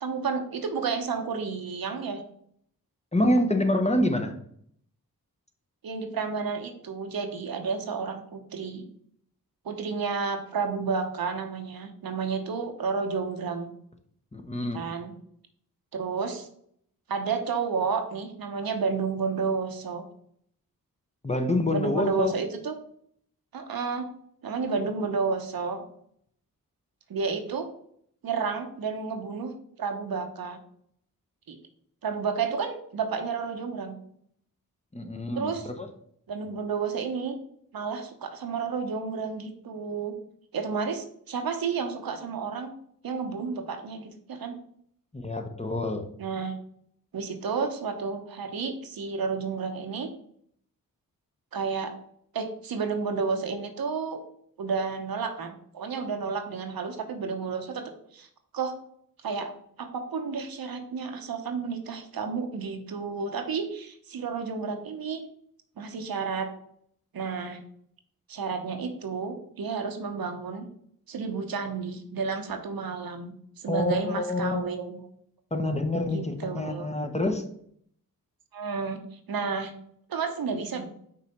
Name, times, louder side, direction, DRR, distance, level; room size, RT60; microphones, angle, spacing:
voice 1, 0.0-2.2 5.8-8.8 9.6-13.7 14.7-15.1 15.9-16.5 17.1-20.0 21.7-22.8 23.5-24.1 24.4-25.8 27.1-27.7 28.2-29.5 29.8-30.6 31.5-31.6 32.0-34.0 35.3-35.7 36.3-37.4 37.7-40.1 40.5-42.7 43.0-44.6 46.2-46.5 47.1-50.1 51.5-51.9 52.3-54.2 54.6-58.3 58.5-58.7 59.2-59.5 59.8-65.2 65.8-66.5 67.1-67.6 68.3-70.7 71.1-75.0 76.1-76.9 78.5-79.7 80.1-80.9, right 5 dB, 75° right, 5 dB, 0.9 m, -31 dB
voice 2, 3.1-4.3 14.3-14.8 21.2-22.3 34.9-35.9 45.1-46.1 73.7-74.6 75.5-77.4, left 1 dB, 20° left, 6 dB, 0.9 m, -27 dB
5.6 x 3.3 x 5.2 m, 0.66 s
cardioid pair, 50°, 36 cm